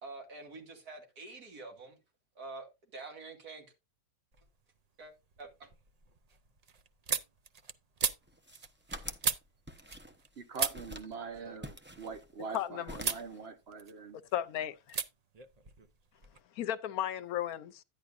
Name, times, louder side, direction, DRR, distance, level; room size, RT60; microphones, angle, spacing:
voice 1, 0.0-2.0 2.4-2.7 2.9-3.7 5.0-5.1 5.4-5.7, right 3 dB, 75° right, 2.9 m, -46 dB
sound 1, 4.3-4.9 5.2-10.3 10.5-12.6 13.0-13.3 13.6-14.4 14.9-15.1 15.3-16.4, right 6 dB, 60° right, 0.4 m, -37 dB
sound 2, 8.3-9.3 9.7-10.4 10.7-11.1 11.6-12.6 12.9-13.4, equal, 10° right, 0.6 m, -46 dB
voice 2, 10.4-14.2, right 5 dB, 45° right, 1.3 m, -43 dB
voice 3, 12.5-13.2 14.3-15.0 16.6-17.8, left 11 dB, 75° left, 1.1 m, -35 dB
10.5 x 10.5 x 2.6 m
omnidirectional pair, 1.6 m